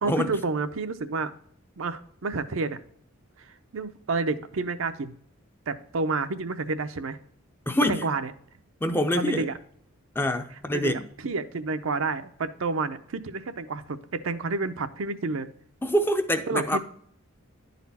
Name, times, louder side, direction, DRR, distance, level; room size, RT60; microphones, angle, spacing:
voice 1, 0.0-1.3 1.8-2.8 3.4-5.1 5.7-7.2 7.9-8.3 9.2-9.6 10.7-15.5 16.5-16.8, right 3 dB, 65° right, 0.6 m, -30 dB
voice 2, 7.7-8.0 8.8-9.5 10.2-11.0 15.8-16.8, equal, 10° left, 0.5 m, -25 dB
10.5 x 4.2 x 4.1 m
head